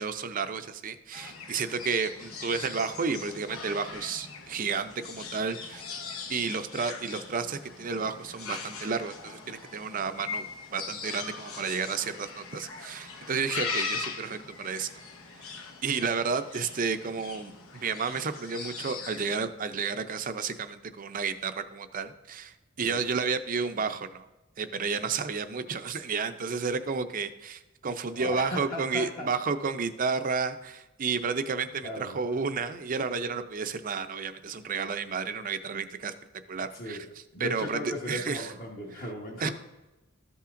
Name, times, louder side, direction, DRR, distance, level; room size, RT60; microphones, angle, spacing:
voice 1, 0.0-5.8 6.3-10.4 10.7-14.9 15.8-24.3 24.6-36.1 36.5-37.0 37.4-38.5 39.4-39.5, right 5 dB, 40° right, 10 dB, 0.5 m, -31 dB
sound 1, 1.1-19.4, left 5 dB, 75° left, 1.0 m, -40 dB
voice 2, 28.1-29.3 31.8-32.2 36.7-37.0 37.3-39.5, left 1 dB, 40° left, -4 dB, 1.2 m, -37 dB
14.0 x 5.6 x 2.5 m, 1.1 s
head